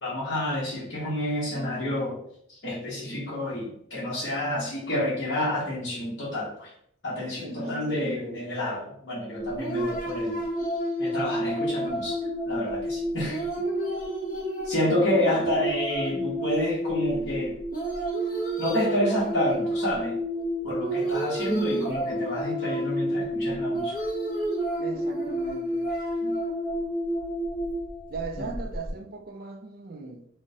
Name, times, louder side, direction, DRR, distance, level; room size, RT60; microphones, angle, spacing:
voice 1, 0.0-2.2 2.5-6.7 7.0-10.4 11.0-13.4 14.6-17.5 18.6-20.2 20.6-24.0 26.2-26.4 28.4-28.5, left 1 dB, 70° left, 1.0 m, -29 dB
voice 2, 7.4-7.8 24.8-25.9 28.1-30.3, right 4 dB, 50° right, 0.4 m, -38 dB
sound 1, 9.4-28.9, right 1 dB, 45° left, 0.6 m, -30 dB
3.7 x 2.1 x 2.6 m
head